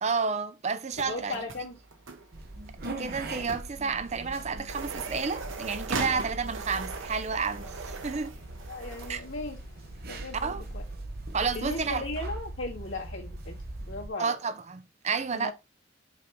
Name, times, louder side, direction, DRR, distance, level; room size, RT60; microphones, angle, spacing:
voice 1, 0.0-1.4 3.0-8.3 9.1-9.2 10.3-10.6 11.3-12.0 14.2-15.5, right 5 dB, 35° right, 0.5 m, -31 dB
sound 1, 0.9-9.1, right 3 dB, 80° right, 1.1 m, -40 dB
voice 2, 1.0-1.8 6.1-6.4 8.7-9.6 10.1-10.8 11.5-14.4 15.3-15.5, left 2 dB, 80° left, 2.0 m, -37 dB
sound 2, 2.3-14.1, right 2 dB, 50° right, 0.9 m, -40 dB
sound 3, 4.1-10.9, left 4 dB, 35° left, 2.5 m, -59 dB
6.2 x 4.4 x 3.5 m
head